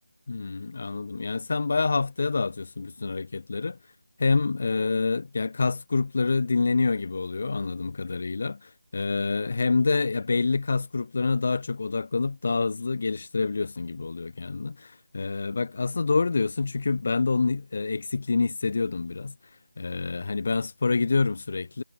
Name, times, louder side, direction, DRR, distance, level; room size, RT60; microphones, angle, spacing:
voice 1, 0.3-3.8 4.2-8.6 8.9-19.4 19.8-21.8, left 4 dB, 45° left, 3.9 m, -27 dB
figure-of-eight pair, 160°, 0 cm